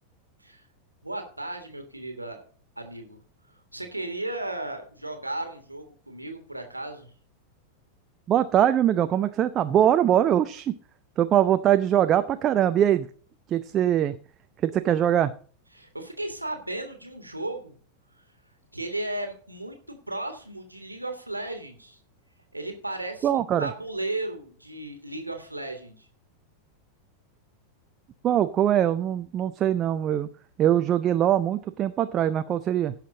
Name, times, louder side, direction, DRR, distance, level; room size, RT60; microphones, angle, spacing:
voice 1, 1.0-2.4 2.8-3.2 3.7-7.1 15.7-17.7 18.7-22.0 22.5-26.1, right 2 dB, 85° right, 5 dB, 1.6 m, -35 dB
voice 2, 8.3-10.8 11.2-13.1 13.5-14.2 14.6-15.3 23.2-23.7 28.2-30.3 30.6-32.9, right 11 dB, 30° right, 10 dB, 0.5 m, -22 dB
16.5 x 5.8 x 3.9 m, 0.42 s
figure-of-eight pair, 90°, 0 cm